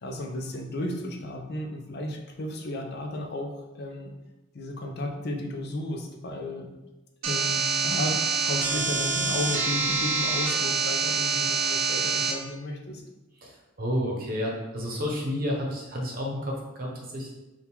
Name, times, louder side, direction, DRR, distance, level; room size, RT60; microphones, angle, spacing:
voice 1, 0.0-4.1 4.5-6.7 7.2-13.0, left 1 dB, 55° left, 3 dB, 0.6 m, -34 dB
sound 1, 7.2-12.3, right 4 dB, 75° right, 0.6 m, -26 dB
voice 2, 13.8-17.3, equal, 50° right, -1 dB, 0.9 m, -30 dB
3.6 x 2.4 x 4.4 m, 1.1 s
head